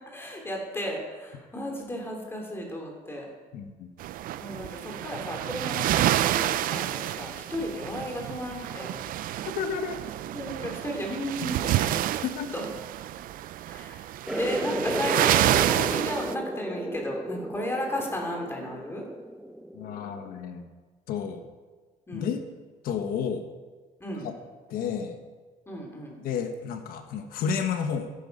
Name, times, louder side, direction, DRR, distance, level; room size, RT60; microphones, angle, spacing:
voice 1, 0.1-3.3 4.4-8.9 10.3-12.0 12.5-12.6 13.7-14.0 14.3-19.0 22.1-22.3 24.0-24.3 25.7-26.2, left 1 dB, 15° left, 0 dB, 3.1 m, -34 dB
voice 2, 3.5-3.9 9.4-10.0 12.2-12.5 19.7-20.7 21.1-21.4 22.1-22.4 22.8-23.5 24.2-24.3 24.7-25.2 26.2-28.1, left 7 dB, 85° left, 6 dB, 1.3 m, -31 dB
sound 1, 4.0-16.3, right 13 dB, 70° right, 0.5 m, -28 dB
sound 2, 14.3-20.4, right 1 dB, ahead, 0.6 m, -34 dB
13.5 x 9.3 x 5.4 m, 1.4 s
cardioid pair, 125°, 15 cm